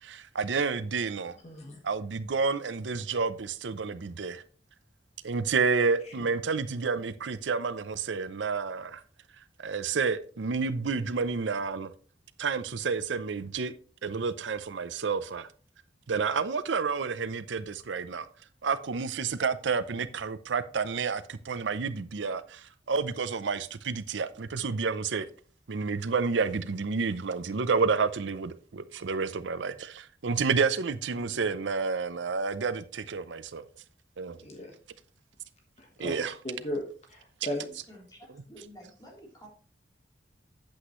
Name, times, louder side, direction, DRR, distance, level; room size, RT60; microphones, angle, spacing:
voice 1, 0.0-1.4 1.8-4.4 5.2-9.0 9.6-11.9 12.4-13.7 14.0-15.5 16.1-18.3 18.6-25.3 25.7-33.7 34.2-34.4 36.0-36.3, right 5 dB, 90° right, 0.6 m, -30 dB
voice 2, 1.4-1.8 31.2-31.4 34.3-34.7 35.8-36.8 37.1-37.6, left 1 dB, 40° left, 1.4 m, -37 dB
voice 3, 37.5-39.5, equal, 20° left, 3.4 m, -51 dB
8.5 x 8.0 x 3.1 m
head